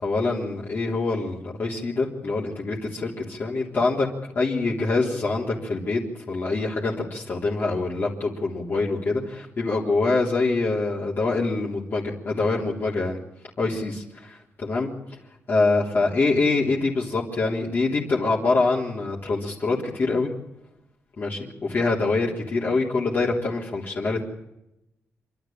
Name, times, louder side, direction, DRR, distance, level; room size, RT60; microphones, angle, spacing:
voice 1, 0.0-4.1 4.4-6.0 6.3-13.2 13.6-14.9 15.5-20.3 21.2-24.2, left 3 dB, 40° left, -4 dB, 3.6 m, -25 dB
28.0 x 12.0 x 8.9 m, 0.88 s
wide cardioid pair, 140°, 5 cm